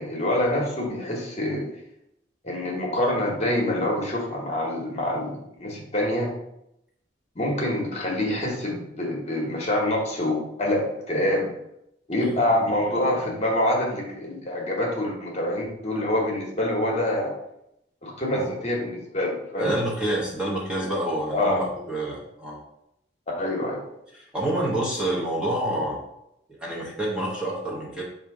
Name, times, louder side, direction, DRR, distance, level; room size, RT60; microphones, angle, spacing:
voice 1, 0.0-1.7 2.4-6.3 7.3-11.5 12.1-17.3 18.0-19.7 21.3-21.6 23.4-23.8, left 1 dB, 35° left, -1 dB, 1.0 m, -26 dB
voice 2, 19.6-22.6 24.1-26.0 26.6-28.0, right 1 dB, 5° right, -5 dB, 0.8 m, -28 dB
4.3 x 2.6 x 4.7 m, 0.81 s
head